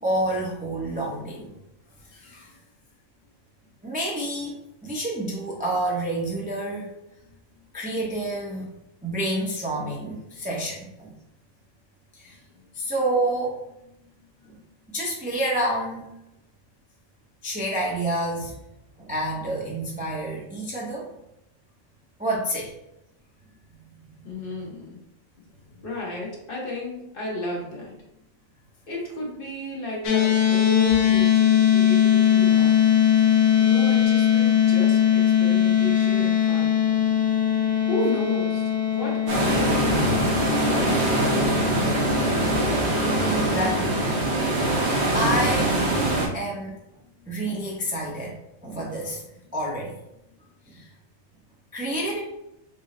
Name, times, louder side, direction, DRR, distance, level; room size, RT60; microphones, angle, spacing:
voice 1, 0.0-1.5 2.1-2.5 3.8-4.5 4.8-6.9 7.7-8.7 9.0-11.1 12.1-12.3 12.7-13.6 14.4-14.6 14.9-16.1 17.4-18.5 19.0-21.1 22.2-22.7 24.0-24.2 36.9-37.0 43.2-44.0 45.1-45.8 46.3-46.8 47.3-48.4 48.6-49.2 49.5-50.0 50.7-50.9 51.7-52.2, right 1 dB, 10° right, -4 dB, 0.4 m, -28 dB
voice 2, 24.2-25.0 25.7-28.0 28.9-32.8 33.6-36.8 37.9-41.6, left 1 dB, 45° left, -3 dB, 1.0 m, -33 dB
sound 1, 30.0-44.4, left 9 dB, 75° left, 1.1 m, -21 dB
sound 2, 39.3-46.3, right 2 dB, 55° right, 1.1 m, -23 dB
3.9 x 2.0 x 3.7 m, 0.86 s
omnidirectional pair, 1.4 m